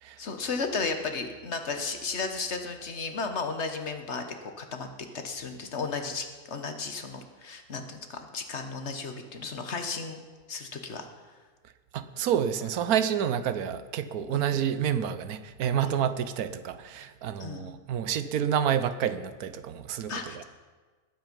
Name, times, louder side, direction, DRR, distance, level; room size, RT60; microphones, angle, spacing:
voice 1, 0.2-4.9 5.1-10.2 10.5-11.1 14.3-14.4 15.8-16.0 17.4-17.7 20.1-20.4, left 4 dB, 50° left, 6 dB, 1.4 m, -34 dB
voice 2, 11.9-20.4, right 9 dB, 90° right, 12 dB, 1.3 m, -29 dB
20.0 x 8.9 x 5.3 m, 1.4 s
omnidirectional pair, 1.5 m